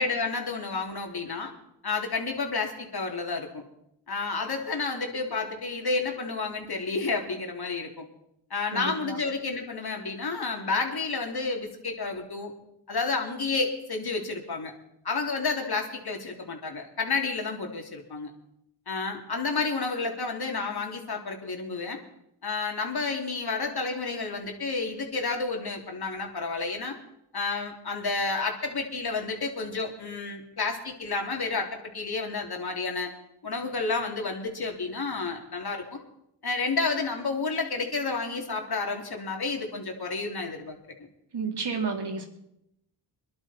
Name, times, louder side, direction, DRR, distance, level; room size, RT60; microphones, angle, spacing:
voice 1, 0.0-1.5 1.8-3.6 4.1-8.1 8.5-12.5 12.9-14.7 15.1-18.3 18.9-22.0 22.4-27.0 27.3-33.1 33.4-36.0 36.4-40.8, left 4 dB, 50° left, 2 dB, 3.4 m, -30 dB
voice 2, 8.7-9.2 41.3-42.3, right 4 dB, 55° right, 2 dB, 3.6 m, -31 dB
22.5 x 11.5 x 4.5 m, 0.81 s
supercardioid pair, 45°, 48 cm